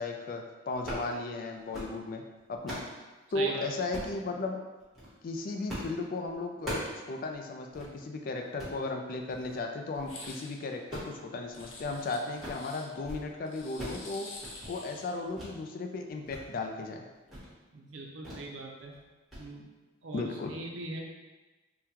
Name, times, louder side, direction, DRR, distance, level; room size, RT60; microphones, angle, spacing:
voice 1, 0.0-2.2 2.5-2.8 3.3-4.6 5.2-14.3 14.7-17.0 20.1-20.5, left 3 dB, 45° left, 3 dB, 0.3 m, -35 dB
sound 1, 0.7-1.1 1.5-2.0 2.4-2.9 3.9-4.2 4.8-5.1 5.7-6.0 6.2-7.0 7.3-7.4 7.7-7.9 8.4-8.8 9.3-9.6 9.9-10.4 10.7-12.0 12.2-12.7 12.9-13.3 13.5-14.0 14.3-14.7 15.3-15.5 15.9-16.4 16.8-16.9 17.3-17.5 18.2-18.5 18.8-19.0 19.3-19.4, equal, ahead, 1.1 m, -41 dB
voice 2, 3.3-3.6 17.7-18.9 19.4-19.7 20.0-21.0, right 2 dB, 85° right, 0 dB, 0.5 m, -40 dB
sound 2, 10.0-10.6 11.5-12.9 13.5-15.2, left 2 dB, 90° left, 0.6 m, -47 dB
3.6 x 2.2 x 2.8 m, 1.2 s
head